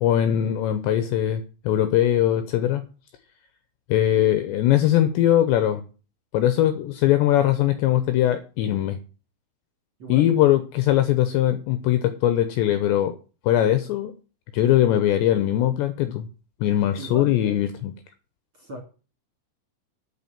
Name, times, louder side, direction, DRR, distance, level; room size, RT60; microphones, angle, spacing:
voice 1, 0.0-2.9 3.9-5.8 6.3-9.0 10.1-13.2 13.4-14.1 14.5-16.3 16.6-17.9, left 12 dB, 75° left, 2.7 m, -21 dB
voice 2, 10.0-10.3 17.0-17.4 18.5-18.8, right 1 dB, 35° right, 2.6 m, -37 dB
9.7 x 8.2 x 7.2 m
omnidirectional pair, 5.8 m